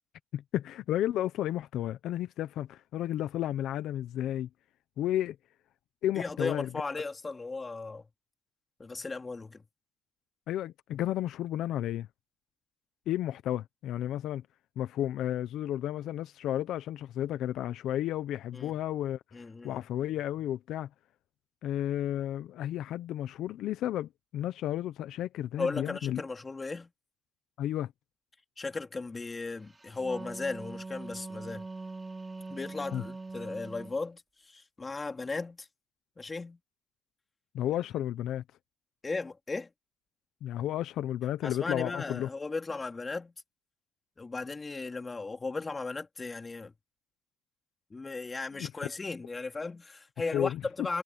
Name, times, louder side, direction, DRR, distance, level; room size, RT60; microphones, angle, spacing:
voice 1, 0.3-4.5 5.0-5.4 6.0-6.7 10.5-12.1 13.1-14.4 14.8-19.2 19.6-20.9 21.6-26.2 27.6-27.9 32.9-33.0 37.5-38.4 40.4-42.3 48.6-48.7 50.3-50.9, left 12 dB, 85° left, 0.8 m, -32 dB
voice 2, 6.1-8.1 8.8-9.6 18.5-18.7 19.3-19.8 25.6-26.9 28.6-31.7 32.5-35.7 36.2-36.6 39.0-39.7 41.4-43.3 44.2-46.7 47.9-51.0, left 3 dB, 25° left, 3.2 m, -36 dB
Wind instrument woodwind instrument, 29.8-34.0, right 3 dB, 20° right, 3.0 m, -42 dB
cardioid pair, 100°, 0 cm